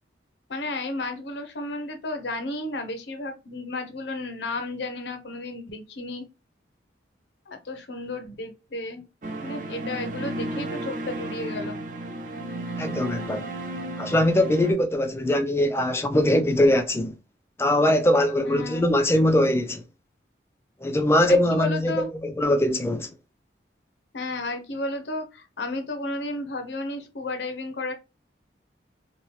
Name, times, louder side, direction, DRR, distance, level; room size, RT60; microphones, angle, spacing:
voice 1, 0.5-6.2 7.5-9.0 9.4-11.8 18.4-18.9 21.3-22.1 24.1-27.9, left 2 dB, 70° left, 0.7 m, -33 dB
sound 1, 9.2-14.7, right 1 dB, 45° right, 0.5 m, -33 dB
voice 2, 12.8-13.4 14.0-17.1 17.6-19.8 20.8-23.1, left 1 dB, 15° left, 0.3 m, -22 dB
3.0 x 2.8 x 3.1 m
head